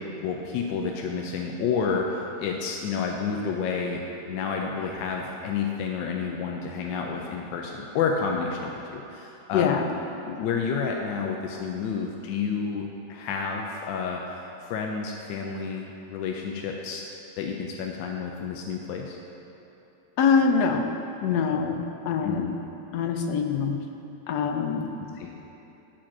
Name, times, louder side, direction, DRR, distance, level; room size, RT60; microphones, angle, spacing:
voice 1, 0.2-9.8 10.3-17.0 17.4-19.2 22.2-22.6 25.1-25.3, left 5 dB, 85° left, 1 dB, 1.3 m, -30 dB
voice 2, 9.5-9.9 20.2-20.9 21.2-22.5 22.9-23.8 24.3-24.9, left 6 dB, 70° left, 5 dB, 1.1 m, -24 dB
8.8 x 5.0 x 5.9 m, 2.9 s
omnidirectional pair, 2.0 m